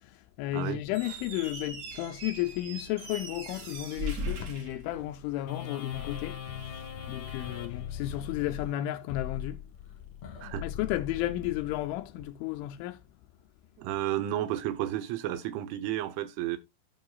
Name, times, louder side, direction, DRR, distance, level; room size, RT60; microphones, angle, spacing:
voice 1, 0.4-6.4 6.7-9.6 10.6-13.0, left 15 dB, 80° left, 2.9 m, -33 dB
Squeak, 0.8-5.5, right 1 dB, 45° right, 2.5 m, -39 dB
sound 1, 5.5-12.2, left 9 dB, 60° left, 1.7 m, -40 dB
voice 2, 13.8-16.6, right 12 dB, 80° right, 3.1 m, -32 dB
13.5 x 5.3 x 2.3 m
omnidirectional pair, 5.8 m